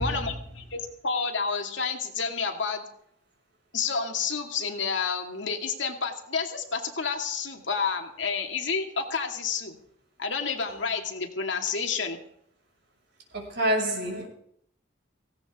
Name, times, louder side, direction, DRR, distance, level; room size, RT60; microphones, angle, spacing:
voice 1, 0.0-2.8 3.7-9.8 10.2-12.2, left 5 dB, 65° left, 3 dB, 2.4 m, -30 dB
voice 2, 13.3-14.3, equal, 60° right, 0 dB, 6.3 m, -27 dB
18.0 x 17.0 x 3.7 m, 0.69 s
head